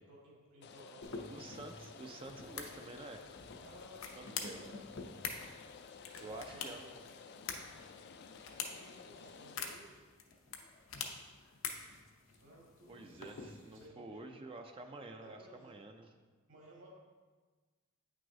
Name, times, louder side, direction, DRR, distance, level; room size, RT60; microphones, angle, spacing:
voice 1, 0.0-1.9 3.6-5.0 5.8-6.9 8.7-10.0 12.3-14.3 15.2-15.8 16.5-16.9, equal, 65° right, -3 dB, 1.9 m, -58 dB
Rain, 0.6-9.8, left 5 dB, 55° left, 0.3 m, -54 dB
sound 1, 1.0-13.9, left 5 dB, 80° left, 0.7 m, -47 dB
voice 2, 1.3-3.2 4.2-4.6 6.2-7.0 12.9-16.1, right 2 dB, 25° right, 5 dB, 0.4 m, -49 dB
8.6 x 6.2 x 2.7 m, 1.4 s
head